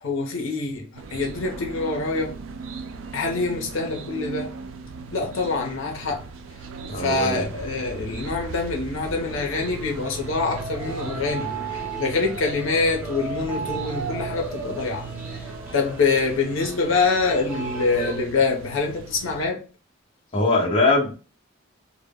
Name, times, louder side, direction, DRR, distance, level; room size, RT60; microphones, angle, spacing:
voice 1, 0.0-2.4 3.1-4.5 5.1-6.2 7.0-15.0 15.3-15.4 15.7-19.6, left 3 dB, 75° left, 0.6 m, -25 dB
sound 1, 1.0-19.5, right 4 dB, 75° right, 0.4 m, -38 dB
voice 2, 6.9-7.5 20.3-21.1, left 2 dB, 25° left, 0.8 m, -21 dB
sound 2, 9.3-18.2, right 3 dB, 5° right, 0.6 m, -36 dB
2.1 x 2.0 x 3.3 m
head